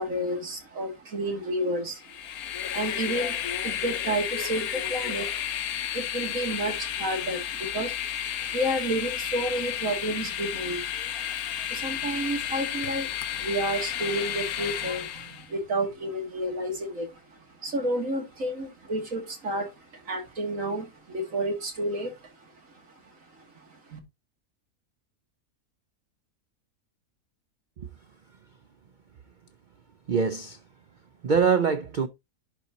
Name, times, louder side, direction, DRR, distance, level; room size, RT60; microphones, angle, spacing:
voice 1, 0.0-24.0, right 1 dB, 60° right, 2.4 m, -31 dB
Train, 2.0-15.5, left 10 dB, 75° left, 1.2 m, -32 dB
voice 2, 30.1-30.6 31.2-32.1, right 6 dB, 90° right, 0.4 m, -24 dB
11.0 x 4.0 x 2.8 m
omnidirectional pair, 1.6 m